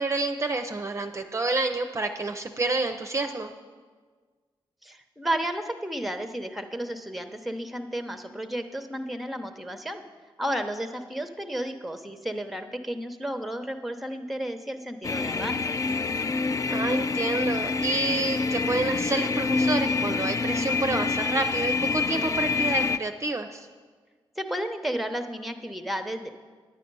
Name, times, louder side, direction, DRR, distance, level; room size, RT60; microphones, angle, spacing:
voice 1, 0.0-3.5 16.7-23.7, right 2 dB, 30° right, 5 dB, 0.6 m, -28 dB
voice 2, 4.8-10.0 10.4-15.8 24.4-26.3, right 1 dB, ahead, 7 dB, 0.8 m, -32 dB
sound 1, 15.0-23.0, left 4 dB, 35° left, 0.4 m, -26 dB
9.4 x 9.2 x 5.4 m, 1.5 s
cardioid pair, 75°, 9 cm